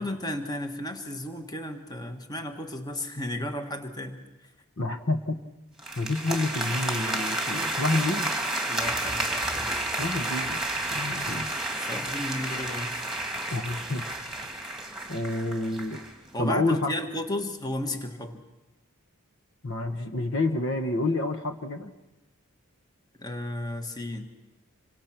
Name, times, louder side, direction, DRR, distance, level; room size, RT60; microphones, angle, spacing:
voice 1, 0.0-4.2 8.7-9.7 11.8-13.1 16.3-18.4 23.2-24.3, left 1 dB, 15° left, 6 dB, 1.6 m, -34 dB
voice 2, 4.8-5.4 6.0-8.3 10.0-10.6 10.9-11.5 13.5-14.0 15.1-16.0 16.4-16.9 19.6-21.9, left 2 dB, 55° left, 7 dB, 1.3 m, -28 dB
sound 1, 5.8-16.1, right 1 dB, ahead, 2.6 m, -31 dB
27.0 x 24.0 x 6.0 m, 1.1 s
head